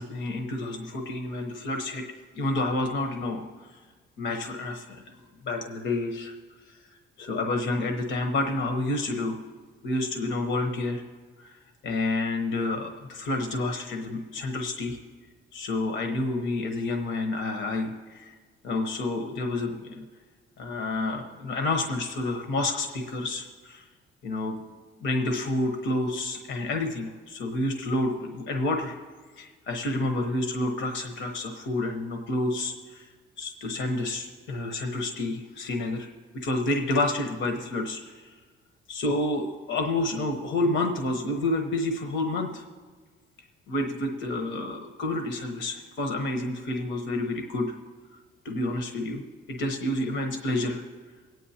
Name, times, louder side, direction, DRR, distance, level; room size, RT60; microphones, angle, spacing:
voice 1, 0.0-2.0 2.4-3.5 4.2-5.0 5.5-6.3 7.2-9.4 9.8-11.0 11.4-11.5 11.8-15.0 15.5-18.3 18.6-20.0 20.6-23.8 24.2-24.5 25.0-28.9 29.4-33.1 33.4-36.1 36.3-38.3 38.9-42.6 43.7-47.7 48.4-49.2 49.5-50.8, left 2 dB, 70° left, 4 dB, 1.0 m, -29 dB
25.0 x 9.2 x 2.8 m, 1.4 s
cardioid pair, 120°, 21 cm